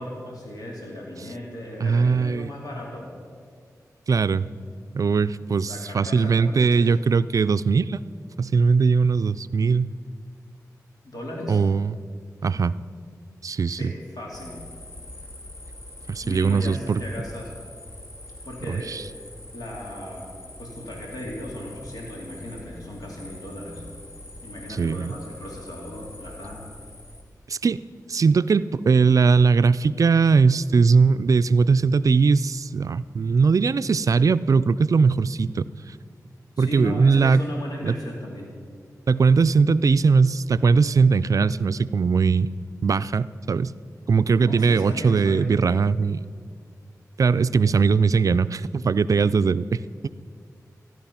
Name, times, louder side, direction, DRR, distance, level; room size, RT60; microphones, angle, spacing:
voice 1, 0.0-3.1 5.6-6.9 11.0-11.6 13.7-14.6 16.2-17.5 18.4-19.2 19.5-20.3 20.6-23.8 24.4-26.7 36.6-38.5 44.2-45.5, left 1 dB, 75° left, -2 dB, 2.5 m, -36 dB
voice 2, 1.8-2.5 4.1-4.5 4.9-8.0 8.4-9.9 11.5-11.9 12.4-12.7 13.4-13.9 16.1-17.0 18.7-19.0 24.8-25.2 27.5-27.8 28.1-35.7 36.6-37.4 37.8-37.9 39.1-42.5 42.8-43.7 44.1-46.2 47.2-49.8, right 5 dB, 60° right, 15 dB, 0.4 m, -20 dB
sound 1, 14.3-27.2, left 1 dB, 45° left, 2.5 m, -43 dB
14.0 x 11.0 x 5.8 m, 2.1 s
cardioid pair, 50°, 7 cm